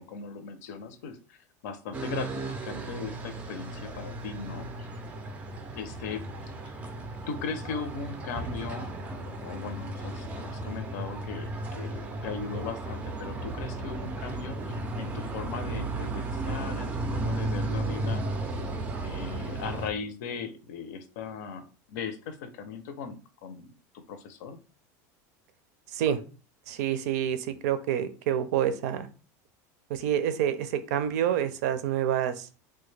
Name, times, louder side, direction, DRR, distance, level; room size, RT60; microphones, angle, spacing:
voice 1, 0.0-1.4 1.6-4.9 5.8-6.3 6.6-6.7 7.3-18.2 19.0-23.7 24.1-24.6, left 5 dB, 75° left, 9 dB, 0.6 m, -38 dB
sound 1, 1.9-19.9, right 2 dB, 15° right, 0.4 m, -34 dB
voice 2, 26.7-29.1 29.9-32.5, right 10 dB, 75° right, 11 dB, 0.5 m, -27 dB
3.3 x 2.2 x 3.2 m, 0.35 s
supercardioid pair, 165°, 9 cm